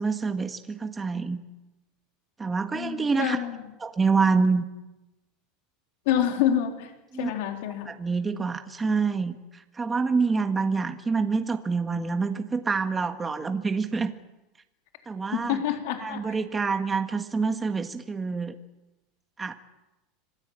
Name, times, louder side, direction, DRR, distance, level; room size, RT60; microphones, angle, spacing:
voice 1, 0.0-1.4 2.4-3.4 3.8-4.6 7.1-7.3 7.9-14.1 15.1-15.6 16.0-18.6 19.4-19.5, right 4 dB, 15° right, 6 dB, 1.7 m, -26 dB
voice 2, 2.7-3.6 6.1-6.9 7.2-7.9 15.3-16.4, left 10 dB, 75° left, 4 dB, 3.7 m, -27 dB
26.5 x 20.5 x 8.9 m, 1.0 s
supercardioid pair, 125°, 0 cm